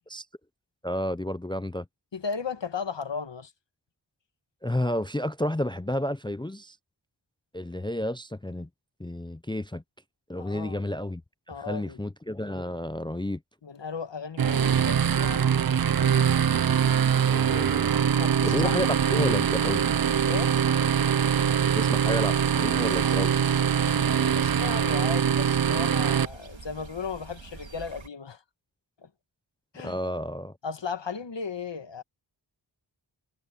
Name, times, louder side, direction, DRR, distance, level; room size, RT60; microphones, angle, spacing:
voice 1, 0.8-1.8 4.6-6.8 7.5-8.7 9.0-9.8 10.3-11.2 11.7-13.4 17.1-17.9 18.4-18.9 19.1-19.8 21.6-23.3 29.8-30.5, left 1 dB, 10° left, 0.5 m, -31 dB
voice 2, 2.1-3.5 10.3-10.8 11.5-12.0 13.6-15.5 18.2-18.9 20.2-20.6 23.9-28.4 29.0-29.1 29.7-29.9 30.6-32.0, left 5 dB, 70° left, 1.4 m, -35 dB
sound 1, 14.4-26.2, right 8 dB, 55° right, 0.5 m, -23 dB
sound 2, 17.8-28.1, right 4 dB, 75° right, 2.7 m, -46 dB
wide cardioid pair, 70°, 45 cm